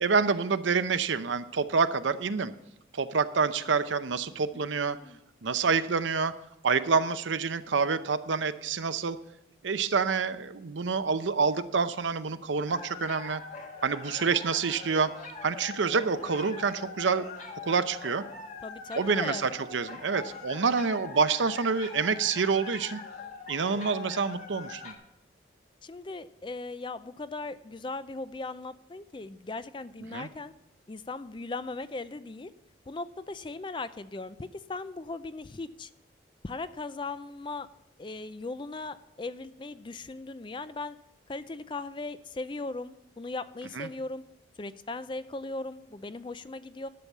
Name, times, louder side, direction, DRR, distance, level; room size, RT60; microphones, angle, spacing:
voice 1, 0.0-2.5 2.9-5.0 5.4-6.3 6.6-9.2 9.6-13.4 13.8-15.1 15.4-17.3 17.6-18.2 18.9-23.0 23.5-24.9 30.1-30.3 43.8-43.9, right 5 dB, 80° right, 12 dB, 0.7 m, -27 dB
voice 2, 4.5-5.2 18.6-19.5 25.8-30.5 30.9-32.5 32.9-35.9 36.4-37.7 38.0-41.0 41.3-44.2 44.6-46.9, left 3 dB, 25° left, 14 dB, 0.4 m, -38 dB
sound 1, 12.7-24.9, left 4 dB, 40° left, 1.5 m, -43 dB
11.5 x 7.0 x 7.2 m, 0.82 s
head